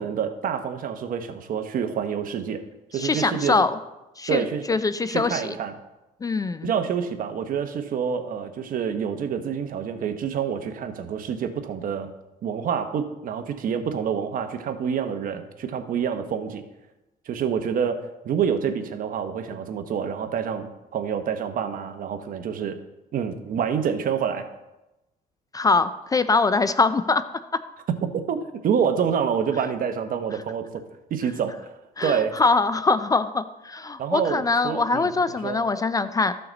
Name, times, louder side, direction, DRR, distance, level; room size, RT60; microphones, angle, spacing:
voice 1, 0.0-2.6 2.9-3.6 4.3-4.6 5.1-5.7 6.6-12.1 12.4-16.6 17.3-22.8 23.1-24.5 28.3-28.4 28.6-30.8 31.1-31.6 32.0-32.4 34.0-35.6, right 7 dB, 55° right, 7 dB, 1.0 m, -27 dB
voice 2, 2.9-3.7 4.2-5.4 6.2-6.7 25.5-27.2 27.5-27.6 32.0-36.3, left 3 dB, 20° left, 13 dB, 0.4 m, -23 dB
14.0 x 5.7 x 4.0 m, 0.98 s
cardioid pair, 110°, 17 cm